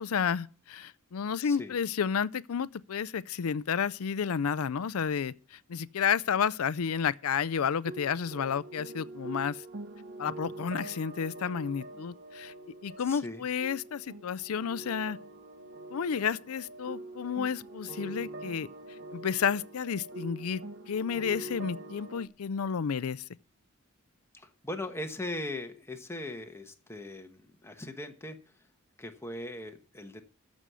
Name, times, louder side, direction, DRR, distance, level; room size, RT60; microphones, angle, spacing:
voice 1, 0.0-9.6 10.2-12.5 12.8-15.2 15.9-18.7 19.1-20.6 20.9-23.2, left 7 dB, 80° left, 0.5 m, -31 dB
voice 2, 1.4-1.8 13.0-13.5 24.3-28.7 29.0-30.2, left 1 dB, 10° left, 1.2 m, -40 dB
sound 1, 7.8-22.3, right 2 dB, 55° right, 1.1 m, -44 dB
13.5 x 6.3 x 6.8 m
head